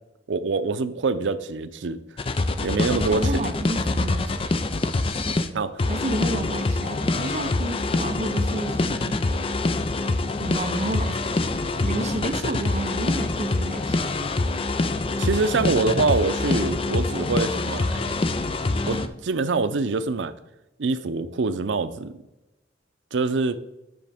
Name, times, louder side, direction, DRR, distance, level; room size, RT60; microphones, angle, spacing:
voice 1, 0.3-2.0 2.6-3.4 5.5-5.9 15.2-18.2 18.9-20.3 20.8-22.1 23.1-23.6, right 3 dB, 90° right, 12 dB, 0.5 m, -25 dB
sound 1, 2.2-5.5 5.8-19.1, left 2 dB, 30° left, 0.4 m, -25 dB
voice 2, 3.0-4.4 5.9-9.2 10.4-11.4 11.8-14.2, right 2 dB, 40° right, 5 dB, 0.8 m, -31 dB
9.7 x 6.0 x 3.5 m, 0.96 s
head